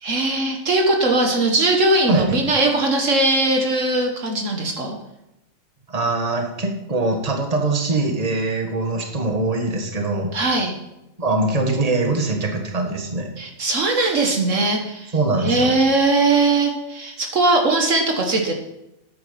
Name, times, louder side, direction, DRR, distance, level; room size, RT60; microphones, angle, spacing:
voice 1, 0.0-5.0 10.3-10.8 13.4-15.1 15.4-18.5, right 2 dB, 65° right, 2 dB, 1.7 m, -20 dB
voice 2, 2.1-2.4 5.9-10.3 11.2-13.3 15.1-15.7, right 2 dB, 30° right, 3 dB, 1.7 m, -22 dB
10.0 x 8.8 x 5.7 m, 0.90 s
omnidirectional pair, 1.4 m